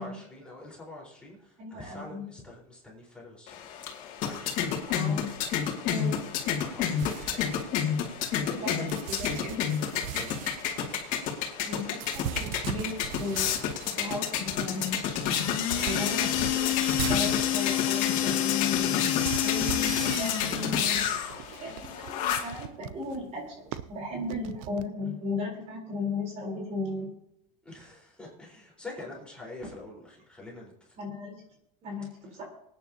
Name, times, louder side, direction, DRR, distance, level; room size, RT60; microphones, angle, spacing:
voice 1, 0.0-4.4 6.6-7.6 8.3-9.0 10.2-10.5 15.6-16.4 19.2-19.9 27.6-31.0 32.2-32.3, left 2 dB, 5° left, -4 dB, 4.5 m, -46 dB
voice 2, 1.6-2.2 4.4-4.5 5.0-5.3 5.8-6.3 8.6-8.9 9.2-9.6 11.7-13.5 14.0-15.0 15.8-19.1 19.4-21.1 21.3-27.1 31.0-31.3 31.8-32.4, left 2 dB, 40° right, 0 dB, 4.0 m, -36 dB
sound 1, 3.5-22.7, left 8 dB, 50° left, 2.4 m, -31 dB
sound 2, 7.0-8.5 8.9-13.9 14.4-14.5 14.7-24.8, right 11 dB, 75° right, 0.7 m, -39 dB
sound 3, 15.1-21.0, left 13 dB, 80° left, 1.8 m, -28 dB
25.0 x 9.5 x 2.9 m, 0.79 s
supercardioid pair, 140°, 17 cm